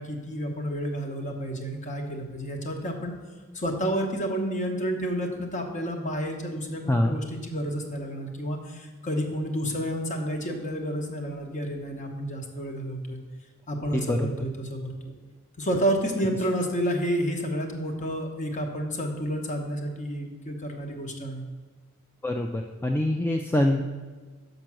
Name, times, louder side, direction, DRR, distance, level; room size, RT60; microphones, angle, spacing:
voice 1, 0.0-3.1 3.5-13.2 13.7-15.1 15.6-21.4, equal, 35° left, 3 dB, 1.0 m, -30 dB
voice 2, 13.9-14.5 22.2-23.8, left 1 dB, 10° left, 3 dB, 0.3 m, -25 dB
6.5 x 5.3 x 6.1 m, 1.4 s
head